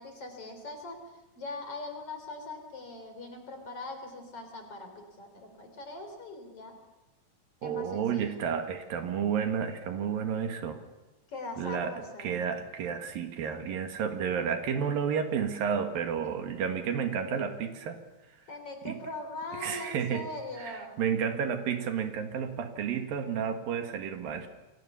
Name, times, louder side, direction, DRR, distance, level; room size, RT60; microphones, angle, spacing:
voice 1, 0.0-6.8 7.6-8.4 11.3-12.4 16.2-16.3 18.5-21.0, left 2 dB, 40° left, 5 dB, 4.8 m, -41 dB
voice 2, 7.6-10.8 11.6-11.9 12.2-18.0 18.9-19.0 19.6-20.2 20.6-24.5, right 7 dB, 75° right, 6 dB, 3.6 m, -31 dB
29.5 x 23.0 x 7.0 m, 1.0 s
omnidirectional pair, 4.1 m